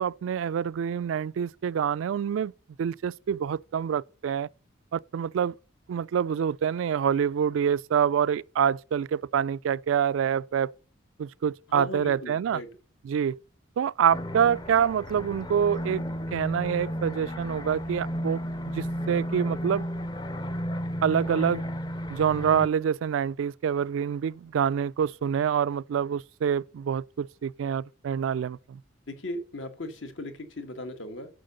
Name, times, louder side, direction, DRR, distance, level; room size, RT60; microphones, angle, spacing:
voice 1, 0.0-2.5 2.8-4.5 4.9-5.5 5.9-10.7 11.2-12.6 13.0-13.4 13.8-16.0 16.3-18.4 18.7-19.8 21.0-21.6 22.1-28.8, right 8 dB, 80° right, 0.3 m, -26 dB
voice 2, 11.7-12.7 29.1-31.3, left 1 dB, 75° left, 1.5 m, -37 dB
sound 1, 14.1-22.7, equal, 20° left, 0.5 m, -33 dB
7.7 x 5.7 x 6.5 m
head